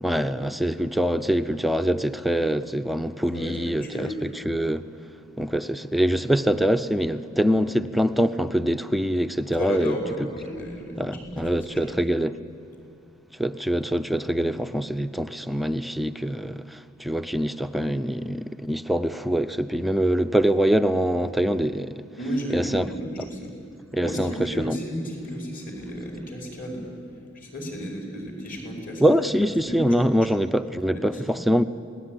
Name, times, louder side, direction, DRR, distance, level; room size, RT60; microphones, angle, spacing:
voice 1, 0.0-4.8 5.4-10.0 11.0-12.4 13.4-22.0 22.5-22.9 23.9-24.8 29.0-31.6, equal, ahead, 0.6 m, -24 dB
voice 2, 3.3-4.3 9.6-12.0 22.2-23.5 23.9-26.9 27.3-29.2 29.7-30.2 30.9-31.4, equal, 45° left, 6.0 m, -33 dB
27.0 x 19.0 x 9.9 m
head